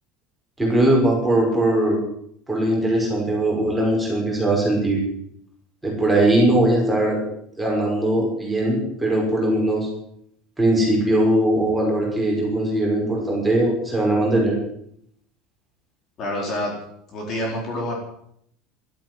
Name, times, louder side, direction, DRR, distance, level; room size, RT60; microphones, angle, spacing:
voice 1, 0.6-2.0 2.5-5.0 5.8-7.2 7.6-9.9 10.6-14.6, right 1 dB, 5° right, -3 dB, 5.8 m, -20 dB
voice 2, 16.2-16.7 17.1-17.9, left 1 dB, 30° left, -1 dB, 4.3 m, -27 dB
13.0 x 11.5 x 9.5 m, 0.70 s
cardioid pair, 170°, 0 cm